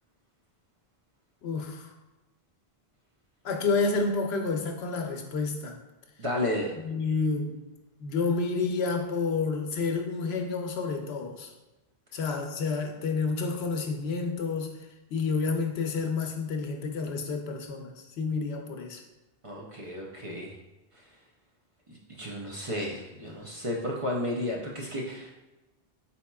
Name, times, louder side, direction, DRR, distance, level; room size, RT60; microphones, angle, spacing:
voice 1, 1.4-1.9 3.4-5.8 6.8-7.6 8.0-11.5 12.1-14.8 15.1-19.0, left 4 dB, 80° left, 4 dB, 0.8 m, -29 dB
voice 2, 6.2-6.7 19.4-20.6 20.9-21.1 21.9-25.3, left 1 dB, 45° right, -3 dB, 0.5 m, -33 dB
4.2 x 4.1 x 2.2 m, 1.1 s
omnidirectional pair, 1.0 m